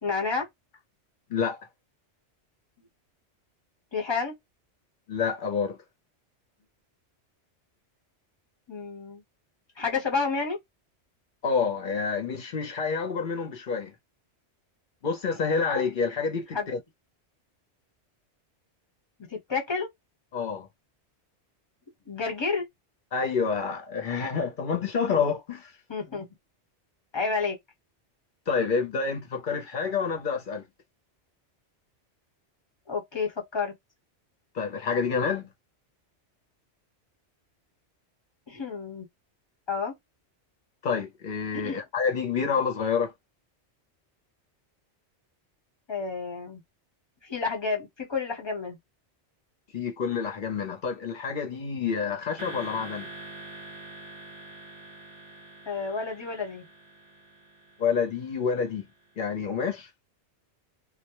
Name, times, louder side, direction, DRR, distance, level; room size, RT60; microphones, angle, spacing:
voice 1, 0.0-0.5 3.9-4.4 8.7-9.2 9.8-10.6 16.5-16.7 19.3-19.9 22.1-22.7 25.9-26.3 27.1-27.6 32.9-33.7 38.5-39.1 39.7-39.9 41.5-41.8 45.9-46.6 47.2-48.8 55.7-56.7, left 4 dB, 25° left, 0.9 m, -30 dB
voice 2, 1.3-1.7 5.1-5.8 11.4-13.9 15.0-16.8 20.3-20.7 23.1-25.7 28.5-30.6 34.5-35.5 40.8-43.1 49.7-53.1 57.8-58.8 59.2-59.9, left 5 dB, 55° left, 0.7 m, -28 dB
sound 1, 52.4-58.8, right 2 dB, 30° right, 0.7 m, -45 dB
2.2 x 2.1 x 2.8 m
omnidirectional pair, 1.2 m